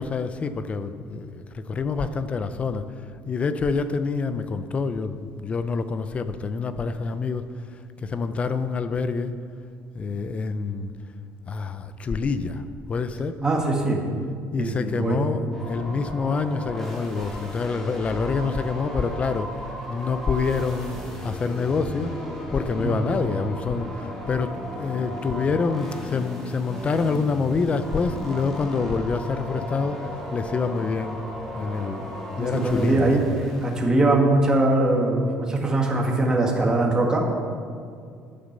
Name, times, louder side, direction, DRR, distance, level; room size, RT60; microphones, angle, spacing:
voice 1, 0.0-9.3 9.9-10.9 11.5-12.6 12.9-13.4 14.5-19.5 19.9-21.0 21.2-22.1 22.5-30.0 30.3-31.2 31.6-32.1 32.4-33.3, left 4 dB, 25° left, 11 dB, 0.5 m, -27 dB
voice 2, 13.4-14.0 14.6-15.2 22.8-23.1 32.4-37.2, right 2 dB, 15° right, -1 dB, 1.8 m, -22 dB
sound 1, 15.5-33.8, equal, 10° left, 2.2 m, -36 dB
10.0 x 9.3 x 6.7 m, 2.3 s
cardioid pair, 160°, 5 cm